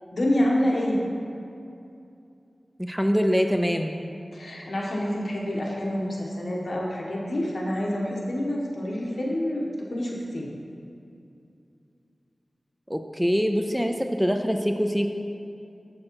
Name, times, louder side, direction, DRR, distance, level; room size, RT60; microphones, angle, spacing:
voice 1, 0.1-1.0 4.3-10.5, left 1 dB, 70° left, -3 dB, 1.4 m, -27 dB
voice 2, 2.8-4.0 12.9-15.1, equal, ahead, 5 dB, 0.4 m, -24 dB
7.3 x 6.4 x 4.7 m, 2.6 s
wide cardioid pair, 70°, 0 cm